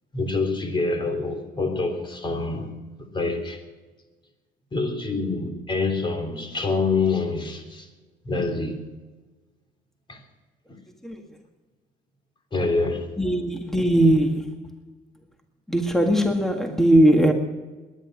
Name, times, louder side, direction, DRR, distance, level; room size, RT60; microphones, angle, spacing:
voice 1, 0.1-2.7 3.0-3.6 4.7-7.9 8.2-8.8 10.1-10.2 10.7-10.8 12.5-13.1, left 3 dB, 30° left, 3.5 m, -26 dB
voice 2, 13.2-14.6 15.7-17.3, right 1 dB, ahead, 1.8 m, -19 dB
19.0 x 11.0 x 6.3 m
cardioid pair, 110°, 17 cm